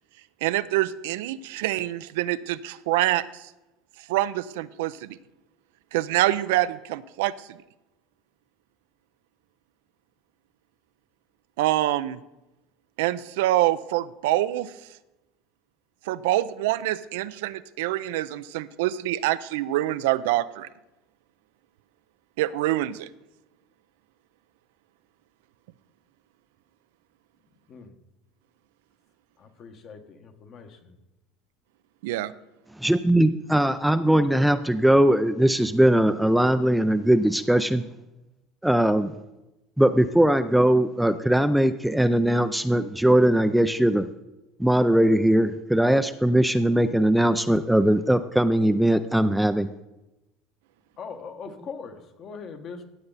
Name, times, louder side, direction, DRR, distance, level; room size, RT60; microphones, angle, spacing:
voice 1, 0.4-3.5 4.1-5.1 5.9-7.3 11.6-12.2 13.0-14.7 16.1-20.7 22.4-23.1 32.0-32.3, right 15 dB, 85° right, 14 dB, 0.4 m, -25 dB
voice 2, 29.4-30.9 51.0-52.8, left 5 dB, 45° left, 6 dB, 1.4 m, -41 dB
voice 3, 32.8-37.8 38.6-39.1 39.8-44.1 44.6-49.7, right 1 dB, ahead, 10 dB, 0.4 m, -20 dB
15.0 x 7.9 x 4.1 m, 0.99 s
supercardioid pair, 110°, 0 cm